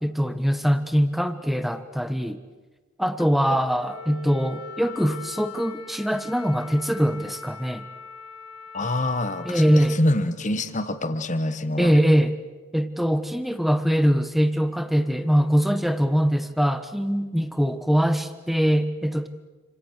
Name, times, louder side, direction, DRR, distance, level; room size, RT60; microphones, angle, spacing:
voice 1, 0.0-2.4 3.0-7.9 9.4-10.0 11.8-12.4 12.7-19.3, equal, ahead, 10 dB, 1.2 m, -22 dB
Wind instrument woodwind instrument, 3.7-10.0, left 5 dB, 80° left, 6.8 m, -42 dB
voice 2, 8.7-12.0, left 1 dB, 35° left, 10 dB, 1.5 m, -26 dB
28.5 x 26.5 x 6.7 m, 1.3 s
head